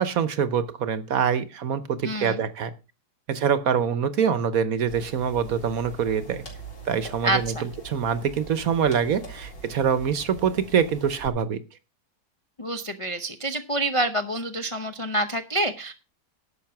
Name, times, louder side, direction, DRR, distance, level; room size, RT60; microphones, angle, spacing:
voice 1, 0.0-2.7 3.3-6.4 6.9-11.6, right 7 dB, 60° right, 13 dB, 1.2 m, -25 dB
voice 2, 2.0-2.4 7.2-7.7 12.6-15.9, right 1 dB, 35° left, 7 dB, 0.5 m, -27 dB
sound 1, 4.9-11.3, right 3 dB, 75° left, 4.6 m, -43 dB
11.5 x 7.0 x 5.8 m, 0.30 s
omnidirectional pair, 1.9 m